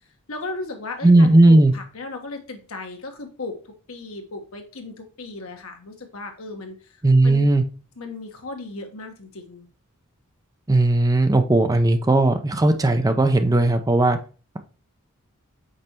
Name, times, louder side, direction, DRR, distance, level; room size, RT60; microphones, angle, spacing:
voice 1, 0.3-3.6 3.9-7.5 8.0-9.7, left 3 dB, 65° left, 4 dB, 1.2 m, -36 dB
voice 2, 1.0-1.7 7.0-7.6 10.7-14.2, right 2 dB, 15° right, 7 dB, 0.5 m, -16 dB
5.4 x 4.1 x 4.3 m, 0.37 s
head